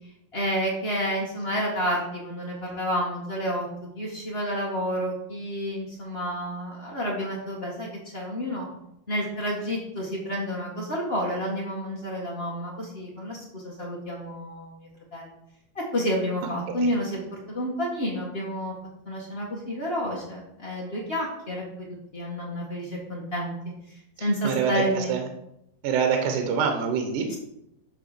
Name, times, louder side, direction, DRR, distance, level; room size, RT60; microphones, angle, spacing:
voice 1, 0.3-3.7 3.9-8.7 9.1-14.7 15.1-15.3 15.7-17.2 17.5-18.7 19.0-21.9 22.1-23.5 24.2-25.1 27.3-27.4, equal, 85° left, -3 dB, 0.5 m, -30 dB
voice 2, 24.2-25.2 25.8-27.3, right 6 dB, 65° right, 3 dB, 2.3 m, -25 dB
11.0 x 3.8 x 6.7 m, 0.81 s
omnidirectional pair, 4.2 m